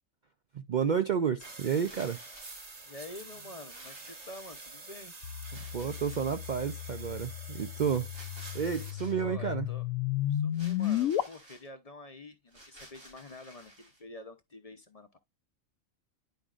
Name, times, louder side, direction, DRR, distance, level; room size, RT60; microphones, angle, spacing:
voice 1, 0.5-2.2 5.7-8.1 8.5-9.7, right 7 dB, 70° right, 0.4 m, -31 dB
sound 1, 1.4-8.9, right 3 dB, 30° right, 1.0 m, -47 dB
sound 2, 1.7-2.8 3.7-4.9 5.5-6.5 8.1-9.3 10.5-11.7 12.5-14.0, right 1 dB, 90° right, 3.9 m, -54 dB
voice 2, 2.8-5.2 9.1-9.9 10.3-15.2, left 2 dB, 35° left, 0.6 m, -48 dB
sound 3, 5.2-11.2, left 12 dB, 80° left, 1.0 m, -34 dB
10.5 x 5.0 x 2.4 m
omnidirectional pair, 1.4 m